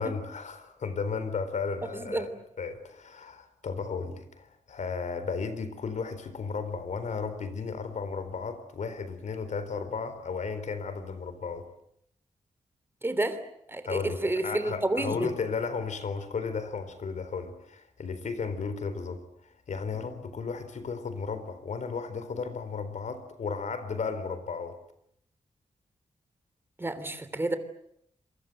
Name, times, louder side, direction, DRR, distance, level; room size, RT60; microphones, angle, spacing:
voice 1, 0.0-2.3 2.6-11.7 13.8-19.2 19.7-24.8, left 5 dB, 75° left, 11 dB, 4.1 m, -34 dB
voice 2, 13.0-13.4 13.7-15.3 26.8-27.6, right 2 dB, 20° right, 11 dB, 3.2 m, -29 dB
28.0 x 23.0 x 7.9 m, 0.74 s
wide cardioid pair, 125°, 13 cm